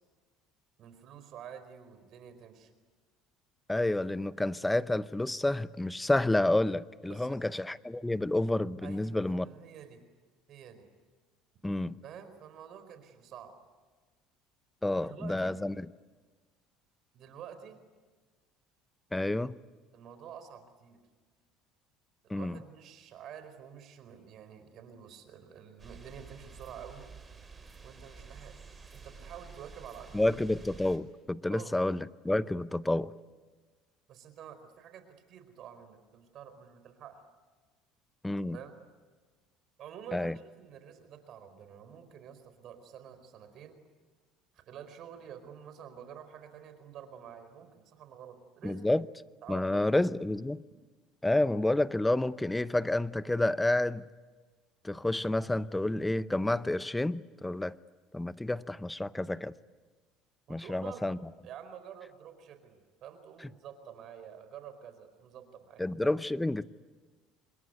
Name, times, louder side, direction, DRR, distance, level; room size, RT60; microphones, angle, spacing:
voice 1, 0.8-2.7 7.0-7.4 8.8-10.0 10.5-10.9 12.0-13.5 15.0-15.6 17.1-17.8 19.9-21.0 22.2-27.0 27.8-28.6 28.9-30.3 31.5-31.7 34.1-37.2 38.3-38.8 39.8-43.8 44.5-48.8 49.4-49.9 60.5-61.2 61.4-66.2, right 8 dB, 55° right, 4.6 m, -49 dB
voice 2, 3.7-9.5 11.6-12.0 14.8-15.9 19.1-19.6 22.3-22.6 30.1-33.1 38.2-38.6 40.1-40.3 48.6-49.0 49.5-50.6 51.2-54.1 54.8-57.8 58.1-59.5 60.5-61.2 65.8-66.7, left 1 dB, 10° left, 0.8 m, -29 dB
sound 1, 25.8-31.0, right 5 dB, 20° right, 4.6 m, -50 dB
26.5 x 22.0 x 9.5 m
supercardioid pair, 85°, 0 cm